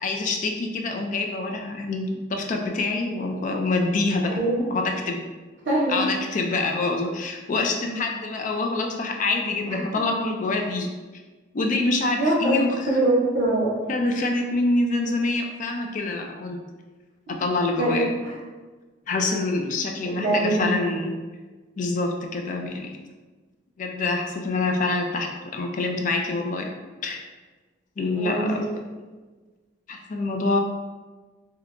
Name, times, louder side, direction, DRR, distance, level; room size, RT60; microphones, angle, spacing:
voice 1, 0.0-4.4 4.7-5.2 5.9-10.9 11.5-12.7 13.9-16.6 17.4-18.1 19.1-21.1 21.8-22.9 23.8-26.7 27.0-27.2 28.0-28.6 29.9-30.6, left 3 dB, 45° left, 3 dB, 0.4 m, -26 dB
voice 2, 4.3-4.6 5.6-6.0 9.7-9.8 12.2-13.7 17.8-18.1 20.0-20.8 28.1-28.6, right 1 dB, 65° right, -6 dB, 0.7 m, -23 dB
2.8 x 2.3 x 3.6 m, 1.3 s
head